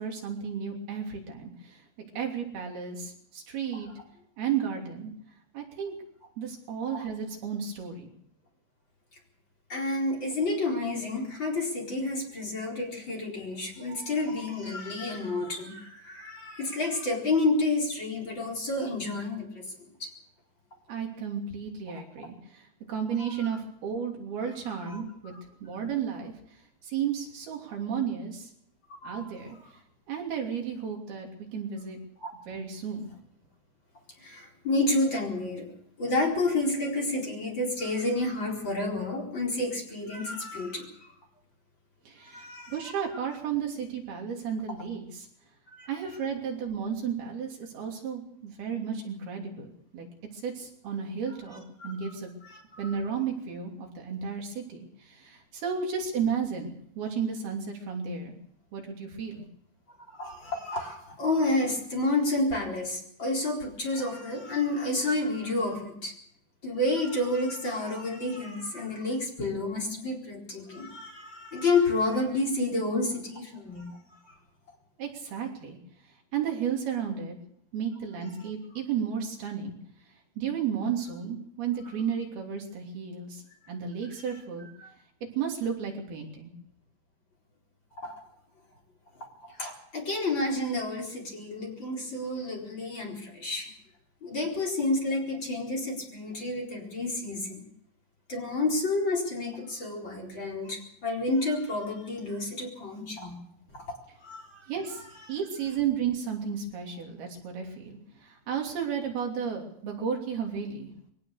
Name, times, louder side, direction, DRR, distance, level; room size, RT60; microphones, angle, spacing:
voice 1, 0.0-1.8 2.1-3.9 4.4-5.1 5.5-5.9 6.4-8.1 20.9-25.3 25.6-26.3 26.8-28.5 29.0-29.6 30.1-32.0 32.5-33.1 42.1-45.3 45.9-50.1 50.3-52.3 52.8-58.3 58.7-59.4 75.0-75.8 76.3-77.4 77.7-79.8 80.4-83.4 83.7-84.7 85.4-86.5 104.7-110.9, right 7 dB, 75° right, 1 dB, 5.0 m, -33 dB
voice 2, 9.7-20.1 24.6-25.0 25.3-25.4 29.0-29.6 32.2-32.3 34.2-35.7 36.0-40.9 42.2-42.9 45.7-45.9 51.8-52.1 52.4-53.0 59.9-66.1 66.6-74.3 84.8-84.9 88.0-88.2 89.2-93.7 94.2-97.6 98.3-103.4 103.7-103.8 104.2-104.7, left 2 dB, 30° left, 1 dB, 4.7 m, -30 dB
22.5 x 17.5 x 6.6 m, 0.69 s
omnidirectional pair, 4.5 m